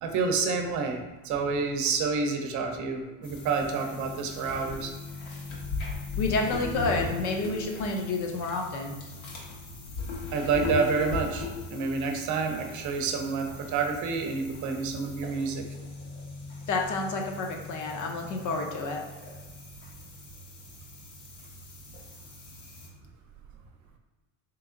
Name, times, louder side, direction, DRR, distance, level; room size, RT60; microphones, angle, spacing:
voice 1, 0.0-4.9 10.3-15.6, right 4 dB, 50° right, 4 dB, 0.8 m, -29 dB
sound 1, 3.2-22.9, left 3 dB, 80° left, 1.4 m, -39 dB
voice 2, 6.2-9.0 16.7-19.0, left 3 dB, 50° left, 2 dB, 0.8 m, -29 dB
3.4 x 3.1 x 3.8 m, 1.2 s
supercardioid pair, 115°, 37 cm